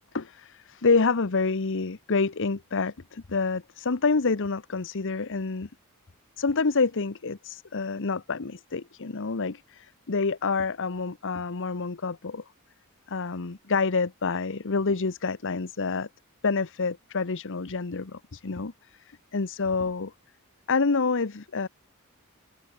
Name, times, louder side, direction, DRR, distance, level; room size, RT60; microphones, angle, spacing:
voice 1, 0.0-5.7 6.4-12.4 13.1-16.1 16.4-20.1 20.7-21.7, left 4 dB, 60° left, 0.9 m, -28 dB
head